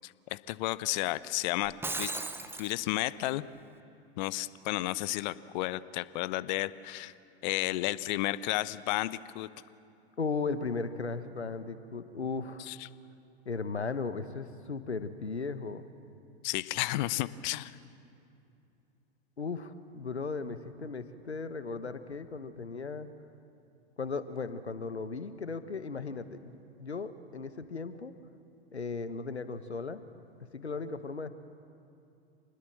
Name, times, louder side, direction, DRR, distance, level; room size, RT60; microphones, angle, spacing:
voice 1, 0.0-1.7 2.0-2.1 2.6-3.4 4.2-7.1 7.4-9.5 12.7-12.8 16.4-17.7, left 17 dB, 45° left, 17 dB, 0.8 m, -32 dB
Shatter, 1.6-2.7, right 3 dB, 5° right, 1.3 m, -36 dB
voice 2, 10.2-12.7 13.4-15.8 19.4-23.1 24.0-28.1 28.7-30.0 30.5-31.3, left 4 dB, 85° left, 12 dB, 1.4 m, -36 dB
27.0 x 20.5 x 7.6 m, 2.7 s
figure-of-eight pair, 95°, 32 cm